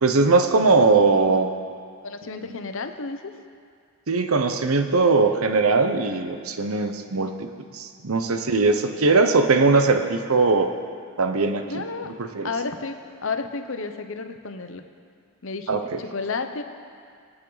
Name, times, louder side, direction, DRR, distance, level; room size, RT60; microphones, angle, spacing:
voice 1, 0.0-1.5 4.1-7.5 7.7-10.7 11.2-11.8 12.2-12.5 15.7-16.0, right 3 dB, 80° right, 7 dB, 0.9 m, -20 dB
voice 2, 2.0-3.2 11.7-12.1 12.4-12.9 13.2-14.8 15.4-16.6, left 4 dB, 60° left, 8 dB, 0.8 m, -31 dB
25.0 x 9.0 x 4.0 m, 2.2 s
head